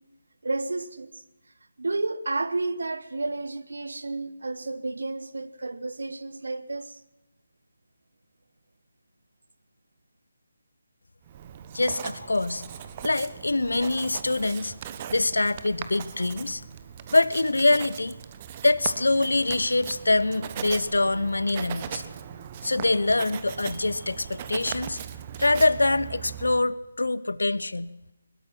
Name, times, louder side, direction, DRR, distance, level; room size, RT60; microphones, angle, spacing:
voice 1, 0.4-1.2 1.8-7.0, right 2 dB, 60° right, 1.5 m, -31 dB
Writing, 11.3-26.6, right 8 dB, 25° right, 1.2 m, -39 dB
voice 2, 11.7-12.6 13.0-14.7 15.1-16.6 17.1-18.2 18.6-22.0 22.6-25.0 25.4-27.9, left 2 dB, 70° left, 1.0 m, -24 dB
22.0 x 20.5 x 6.0 m
figure-of-eight pair, 150°, 0 cm